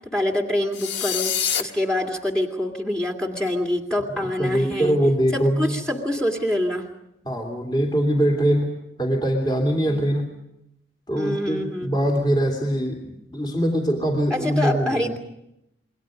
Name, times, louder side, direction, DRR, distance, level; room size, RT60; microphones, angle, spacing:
voice 1, 0.0-5.0 5.3-6.9 9.9-10.2 11.2-12.0 14.3-15.2, left 1 dB, 5° left, 2 dB, 2.2 m, -26 dB
sound 1, 0.7-1.6, left 8 dB, 55° left, 1.5 m, -25 dB
voice 2, 4.4-5.8 7.2-8.7 9.0-10.2 11.1-15.0, equal, 20° left, 2 dB, 3.1 m, -22 dB
28.0 x 22.5 x 5.2 m, 0.82 s
head